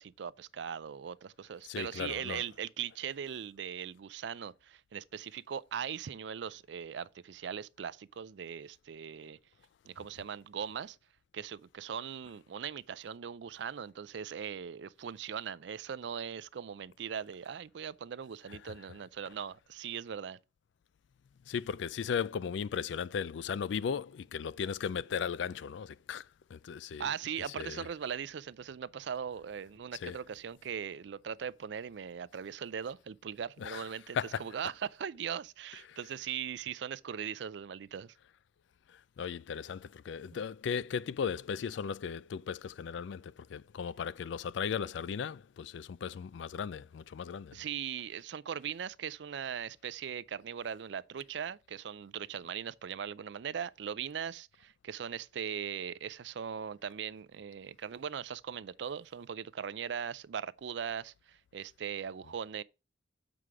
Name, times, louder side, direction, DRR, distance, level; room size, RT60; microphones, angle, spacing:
voice 1, 0.0-9.4 9.9-11.0 11.3-20.4 27.0-38.2 47.5-62.6, right 8 dB, 65° right, 0.4 m, -40 dB
voice 2, 1.6-2.4 9.2-9.3 18.5-18.7 21.5-27.1 27.6-27.9 30.0-30.2 33.6-33.9 34.1-34.4 35.9-36.0 38.9-47.6, left 7 dB, 70° left, 0.3 m, -37 dB
7.7 x 4.8 x 4.8 m
head